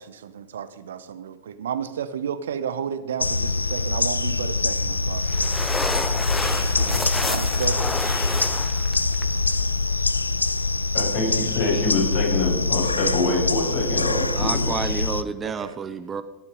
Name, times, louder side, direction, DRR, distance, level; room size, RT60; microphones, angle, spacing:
voice 1, 0.0-5.5 6.6-7.8 14.3-14.4 15.4-15.8, right 8 dB, 65° right, 12 dB, 0.9 m, -32 dB
sound 1, 3.2-15.2, left 3 dB, 80° left, 0.5 m, -24 dB
sound 2, 4.8-9.9, left 2 dB, 10° left, 1.1 m, -30 dB
voice 2, 10.9-14.8, left 2 dB, 55° left, -1 dB, 6.2 m, -25 dB
voice 3, 14.3-16.2, right 6 dB, 20° right, 11 dB, 0.7 m, -30 dB
18.0 x 11.0 x 5.3 m, 1.1 s
figure-of-eight pair, 90°, 0 cm